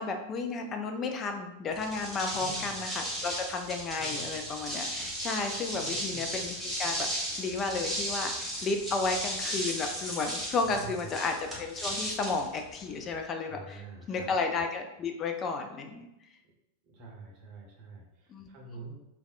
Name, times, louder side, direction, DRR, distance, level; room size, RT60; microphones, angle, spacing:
voice 1, 0.0-16.1 18.3-18.5, left 4 dB, 25° left, 4 dB, 0.4 m, -33 dB
sound 1, 1.7-13.2, equal, ahead, 1.1 m, -35 dB
voice 2, 2.3-2.7 4.0-4.4 5.7-6.4 10.6-11.0 13.5-14.3 16.9-18.9, right 3 dB, 40° right, -1 dB, 0.8 m, -47 dB
3.4 x 2.3 x 2.4 m, 0.89 s
figure-of-eight pair, 90°, 0 cm